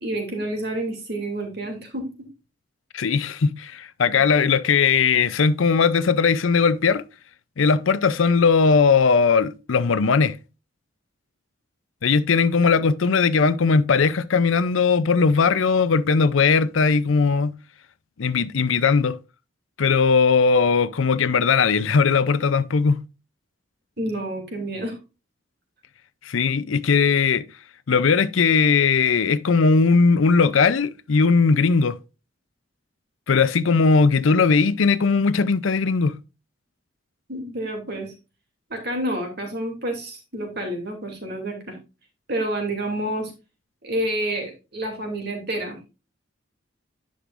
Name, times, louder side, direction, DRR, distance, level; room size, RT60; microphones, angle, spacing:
voice 1, 0.0-2.3 24.0-25.0 37.3-38.1 38.7-41.8 42.3-43.3 43.8-45.9, right 1 dB, 50° right, 2.7 m, -29 dB
voice 2, 2.9-7.0 7.6-10.3 12.0-17.5 18.2-19.2 19.8-23.0 26.2-27.4 27.9-31.9 33.3-36.2, left 5 dB, 75° left, 0.5 m, -19 dB
10.0 x 6.5 x 2.5 m
head